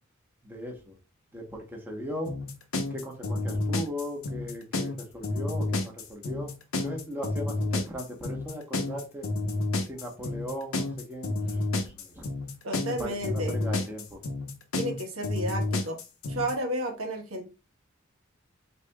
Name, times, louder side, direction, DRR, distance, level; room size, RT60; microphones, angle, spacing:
voice 1, 0.4-1.0 1.3-2.3 2.9-6.5 6.8-9.3 9.8-12.3 12.9-14.2, equal, 10° right, 0.9 m, -38 dB
sound 1, 2.3-16.5, left 2 dB, 80° left, 0.8 m, -30 dB
voice 2, 12.6-13.6 14.7-16.0 16.3-17.4, right 1 dB, 85° right, 1.2 m, -32 dB
8.1 x 2.8 x 2.3 m
head